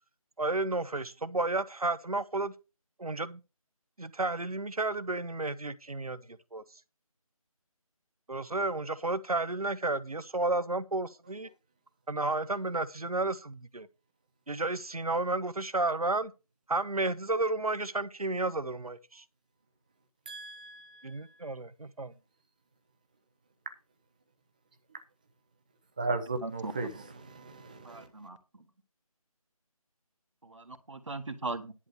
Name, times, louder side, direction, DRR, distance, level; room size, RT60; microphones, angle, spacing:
voice 1, 0.4-2.5 3.0-3.4 4.0-6.6 8.3-11.5 12.1-13.9 14.5-16.3 16.7-19.2 21.0-22.1, right 2 dB, 80° right, 1.0 m, -32 dB
voice 2, 20.3-21.5 26.0-28.1, right 3 dB, 15° right, 0.7 m, -37 dB
voice 3, 26.4-26.9 27.8-28.4 30.4-31.7, right 3 dB, 55° right, 1.6 m, -39 dB
11.0 x 5.1 x 6.6 m
figure-of-eight pair, 160°, 19 cm